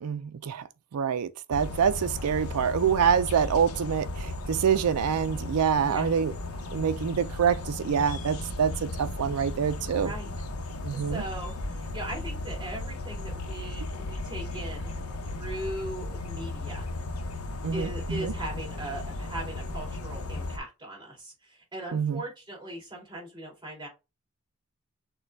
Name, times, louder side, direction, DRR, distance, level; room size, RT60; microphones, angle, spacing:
voice 1, 0.0-0.7 0.9-6.3 6.7-10.1 10.8-11.2 17.6-18.3 21.9-22.2, right 7 dB, 85° right, 0.4 m, -26 dB
sound 1, 1.5-20.6, left 2 dB, 80° left, 0.8 m, -35 dB
voice 2, 5.8-6.1 9.9-10.3 10.9-15.0 15.2-16.9 17.7-23.9, right 1 dB, 20° right, 2.8 m, -39 dB
6.3 x 2.3 x 3.3 m
head